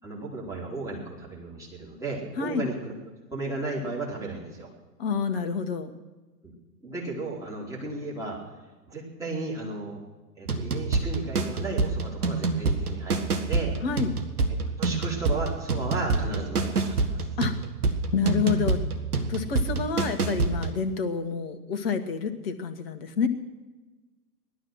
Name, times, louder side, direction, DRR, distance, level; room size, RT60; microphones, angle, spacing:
voice 1, 0.0-2.9 3.3-4.7 6.4-6.5 6.8-8.4 8.9-10.0 10.4-13.8 14.5-17.3, right 3 dB, 5° right, -5 dB, 3.4 m, -34 dB
voice 2, 5.0-5.9 13.8-14.1 17.4-17.5 18.1-18.8 19.3-23.3, left 6 dB, 35° left, 8 dB, 1.5 m, -28 dB
sound 1, 10.5-20.8, right 3 dB, 65° right, 1.7 m, -27 dB
18.5 x 12.0 x 6.2 m, 1.2 s
figure-of-eight pair, 120°, 49 cm